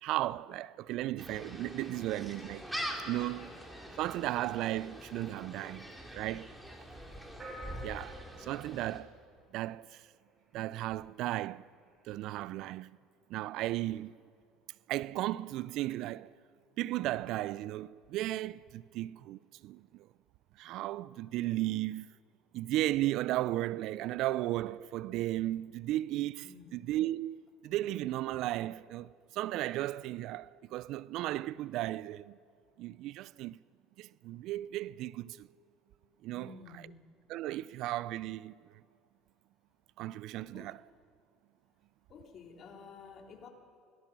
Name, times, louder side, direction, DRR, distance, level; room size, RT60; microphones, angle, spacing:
voice 1, 0.0-2.6 3.0-3.5 4.0-5.8 6.1-6.5 7.8-9.1 9.5-10.0 10.5-11.6 12.1-12.9 13.3-14.1 14.9-16.3 16.8-20.0 20.6-22.1 22.5-26.5 26.7-32.4 32.8-33.6 34.0-35.5 36.2-36.5 37.3-38.5 40.0-40.8, right 15 dB, 65° right, 0.4 m, -35 dB
Gull seagull, 1.2-9.0, equal, 5° right, 4.0 m, -44 dB
voice 2, 3.2-3.5 26.4-26.7 36.3-36.9 40.5-40.7 42.1-43.5, left 5 dB, 50° left, 3.4 m, -52 dB
sound 1, 7.4-10.0, right 1 dB, 30° right, 6.8 m, -49 dB
23.5 x 18.0 x 6.1 m
hypercardioid pair, 75°, 0 cm